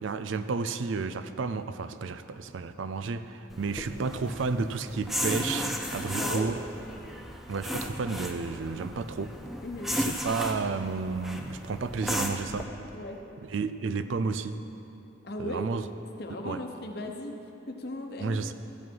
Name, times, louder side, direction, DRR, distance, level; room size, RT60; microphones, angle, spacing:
voice 1, 0.0-6.6 7.5-9.3 10.0-12.7 13.5-14.6 15.4-15.9 16.5-16.6 18.2-18.5, right 4 dB, 75° right, 11 dB, 0.4 m, -32 dB
sound 1, 3.5-12.6, equal, ahead, 0.5 m, -35 dB
voice 2, 6.1-6.5 9.6-10.0 12.9-13.2 15.2-15.7 16.2-17.3 17.7-18.4, left 1 dB, 50° left, 3 dB, 0.9 m, -37 dB
14.0 x 8.4 x 4.7 m, 2.9 s
head